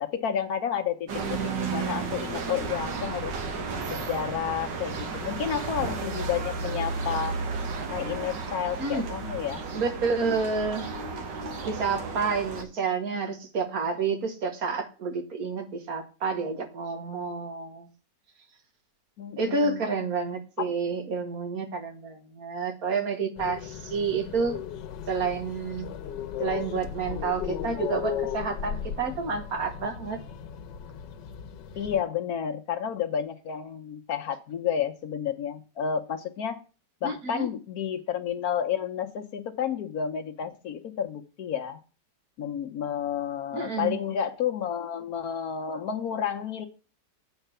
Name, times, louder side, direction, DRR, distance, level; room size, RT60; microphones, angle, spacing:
voice 1, 0.0-3.4 3.9-7.4 7.9-9.6 19.2-19.8 20.6-20.7 31.8-36.6 37.0-41.8 42.4-46.7, left 8 dB, 65° left, 6 dB, 1.2 m, -31 dB
sound 1, 1.1-12.6, right 4 dB, 85° right, 1.9 m, -33 dB
voice 2, 9.7-10.9 11.6-17.9 19.4-24.6 25.1-25.9 26.4-30.2 37.0-37.5 43.5-44.0, right 4 dB, 60° right, 6 dB, 1.6 m, -29 dB
sound 2, 23.4-32.0, left 9 dB, 90° left, 1.4 m, -36 dB
8.1 x 4.5 x 6.7 m, 0.35 s
omnidirectional pair, 1.8 m